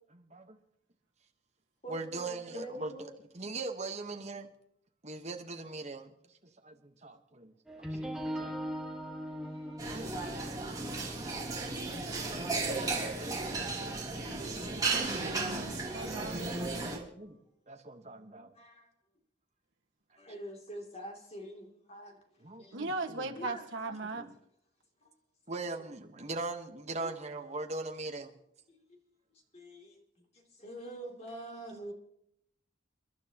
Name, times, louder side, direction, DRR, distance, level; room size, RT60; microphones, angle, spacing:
voice 1, 0.1-0.6 1.9-4.5 5.0-6.1 6.6-7.5 7.8-8.6 17.1-17.4 17.7-18.5 22.4-23.3 24.2-24.3 25.5-28.3, right 3 dB, 35° right, 4 dB, 1.2 m, -40 dB
voice 2, 1.8-3.1 9.4-10.7 14.6-15.1 16.1-16.9 18.5-18.9 20.2-22.2 22.6-22.8 23.1-23.6 23.9-24.3 25.0-25.1 27.0-27.1 28.7-28.8 29.5-30.0 30.6-31.9, right 1 dB, 35° left, 1 dB, 2.8 m, -46 dB
sound 1, 7.7-13.6, equal, 5° right, 1.6 m, -41 dB
sound 2, 9.8-17.0, right 3 dB, 20° right, 3.0 m, -35 dB
voice 3, 14.9-16.5 22.7-24.2, right 3 dB, 75° right, 2 dB, 1.6 m, -38 dB
29.0 x 11.5 x 3.0 m, 0.74 s
head